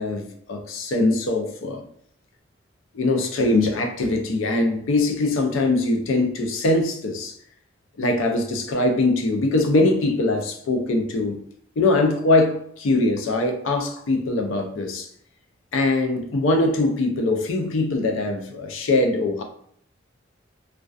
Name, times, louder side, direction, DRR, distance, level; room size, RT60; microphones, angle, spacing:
voice 1, 0.0-1.9 2.9-7.3 8.0-11.4 11.8-15.1 15.7-19.4, left 2 dB, 85° left, 4 dB, 0.4 m, -22 dB
2.3 x 2.2 x 2.4 m, 0.64 s
head